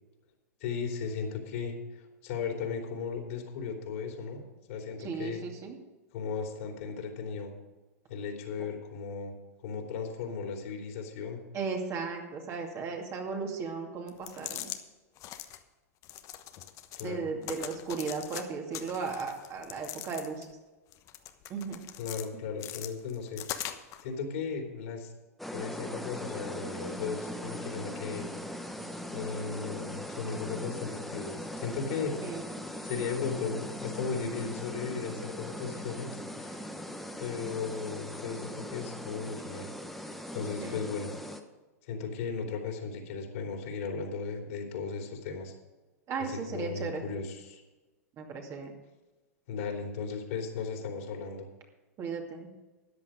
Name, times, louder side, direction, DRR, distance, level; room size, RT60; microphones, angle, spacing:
voice 1, 0.6-4.4 4.7-5.4 6.1-7.5 8.1-11.4 17.0-17.3 22.0-23.4 24.0-25.1 25.5-28.3 29.1-32.2 32.8-36.7 37.2-39.7 40.0-40.1 40.3-41.1 41.9-45.5 46.2-47.6 49.5-51.5, left 5 dB, 60° left, 2 dB, 3.2 m, -36 dB
voice 2, 5.0-5.8 11.5-14.7 17.0-20.5 21.5-21.8 32.2-32.4 40.6-40.8 46.1-47.1 48.2-48.7 52.0-52.5, right 5 dB, 35° right, 2 dB, 2.4 m, -36 dB
sound 1, 14.1-14.8 15.2-15.6 16.0-17.1 17.4-18.4 18.7-20.5 20.9-22.3 22.6-24.0, left 12 dB, 40° left, 1.1 m, -41 dB
sound 2, 25.4-41.4, equal, ahead, 1.2 m, -40 dB
13.5 x 9.9 x 5.1 m, 1.2 s
hypercardioid pair, 105°, 9 cm